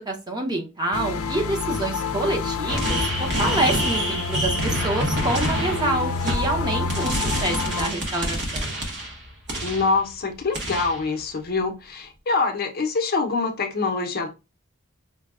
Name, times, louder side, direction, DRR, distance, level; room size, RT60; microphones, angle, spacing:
voice 1, 0.0-8.7, right 2 dB, 20° right, 0.7 m, -27 dB
sound 1, 0.9-7.9, left 4 dB, 90° left, 0.5 m, -28 dB
sound 2, 2.7-10.0 10.5-11.1, equal, 50° right, 1.1 m, -27 dB
voice 2, 9.6-14.3, left 4 dB, 45° left, 0.7 m, -25 dB
5.2 x 2.2 x 2.4 m
head